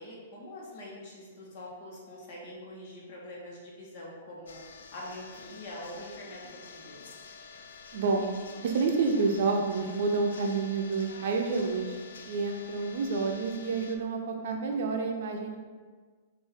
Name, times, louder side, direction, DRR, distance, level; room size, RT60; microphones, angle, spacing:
voice 1, 0.0-4.6 4.9-6.4 6.7-7.0, left 1 dB, 50° left, -4 dB, 1.4 m, -44 dB
sound 1, 4.5-14.0, left 5 dB, 80° left, 0.5 m, -48 dB
voice 2, 7.9-8.3 8.6-12.0 12.3-15.6, right 4 dB, 60° right, 2 dB, 0.6 m, -29 dB
5.3 x 2.6 x 3.6 m, 1.5 s
hypercardioid pair, 145°, 0 cm